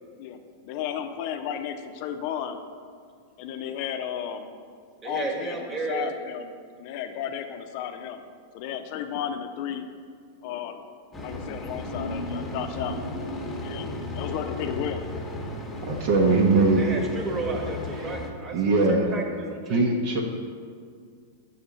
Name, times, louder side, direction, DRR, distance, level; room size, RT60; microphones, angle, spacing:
voice 1, 0.2-2.6 3.4-4.5 5.0-6.5 6.8-8.2 8.5-9.8 10.4-10.8 11.2-13.0 13.6-15.0, left 9 dB, 55° left, 7 dB, 0.5 m, -33 dB
voice 2, 5.0-6.1 16.8-19.9, right 3 dB, 25° right, 2 dB, 1.1 m, -33 dB
sound 1, 11.1-18.3, left 2 dB, 10° left, 1.0 m, -34 dB
voice 3, 15.9-16.9 18.0-18.1 18.5-19.1 19.7-20.2, right 3 dB, 55° right, 0 dB, 0.9 m, -21 dB
6.7 x 4.3 x 4.9 m, 2.1 s
hypercardioid pair, 115°, 0 cm